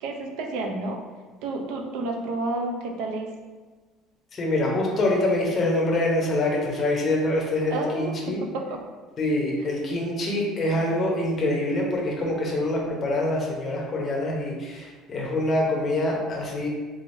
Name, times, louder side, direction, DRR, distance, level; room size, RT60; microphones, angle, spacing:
voice 1, 0.0-1.0 1.4-3.3 7.7-8.8, right 2 dB, 70° right, 2 dB, 0.5 m, -30 dB
voice 2, 4.3-8.4 9.2-16.7, left 1 dB, 25° left, -2 dB, 0.6 m, -25 dB
3.7 x 3.2 x 2.6 m, 1.4 s
cardioid pair, 170°, 0 cm